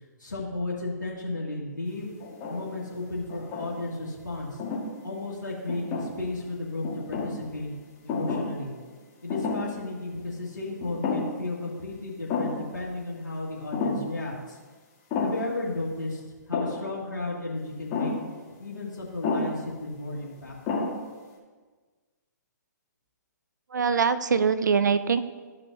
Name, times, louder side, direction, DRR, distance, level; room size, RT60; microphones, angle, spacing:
voice 1, 0.2-2.1 2.5-4.6 5.0-7.7 8.0-8.7 9.2-14.6 15.2-18.1 18.6-20.5, left 2 dB, 85° left, -4 dB, 2.0 m, -34 dB
sound 1, 2.2-2.8 3.3-4.0 4.6-4.9 5.7-6.4 6.8-7.4 8.1-8.6 8.9-9.0 9.3-9.8 10.1-10.3 10.8-11.5 11.7-11.8 12.3-12.7 13.7-14.1 15.1-15.6 16.5-16.9 17.9-18.3 19.2-19.6 20.3-20.4 20.7-21.1, left 3 dB, 30° left, 1.8 m, -30 dB
voice 2, 23.7-25.2, right 6 dB, 70° right, 13 dB, 0.6 m, -23 dB
13.0 x 5.6 x 2.7 m, 1.4 s
figure-of-eight pair, 130°, 10 cm